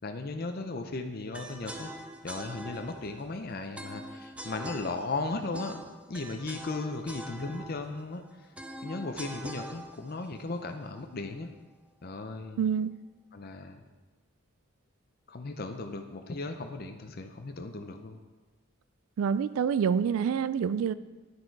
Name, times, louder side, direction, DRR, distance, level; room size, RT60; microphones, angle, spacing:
voice 1, 0.0-1.9 2.2-5.8 6.1-8.2 8.8-11.5 12.0-12.6 13.3-13.8 15.3-18.2, left 3 dB, 45° left, 6 dB, 0.6 m, -36 dB
sound 1, 1.3-11.4, right 1 dB, 5° right, 0.4 m, -44 dB
voice 2, 12.6-12.9 19.2-20.9, right 7 dB, 75° right, 16 dB, 0.3 m, -27 dB
9.7 x 6.6 x 4.6 m, 1.2 s
head